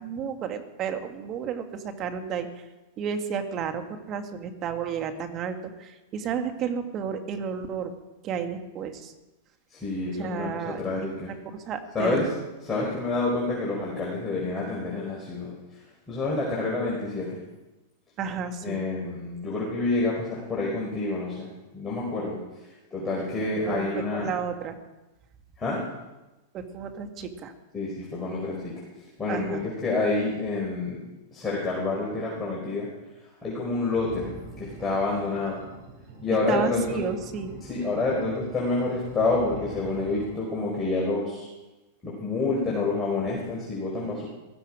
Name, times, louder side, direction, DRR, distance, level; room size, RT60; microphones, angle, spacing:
voice 1, 0.0-2.5 3.0-7.9 8.2-9.1 10.2-11.2 11.5-12.3 12.7-12.9 18.2-18.8 23.7-24.7 26.5-27.5 29.3-29.6 36.5-37.5, right 7 dB, 35° right, 6 dB, 2.0 m, -32 dB
voice 2, 9.7-11.3 11.9-12.3 12.6-15.5 16.1-17.4 18.6-22.4 22.9-24.3 25.6-25.8 27.7-31.0 31.3-32.9 33.4-35.6 36.2-37.0 37.7-41.5 42.0-44.3, left 3 dB, 15° left, -5 dB, 4.9 m, -28 dB
sound 1, 33.9-40.3, right 4 dB, 60° right, 6.5 m, -44 dB
16.0 x 15.0 x 5.0 m, 1.1 s
hypercardioid pair, 115°, 0 cm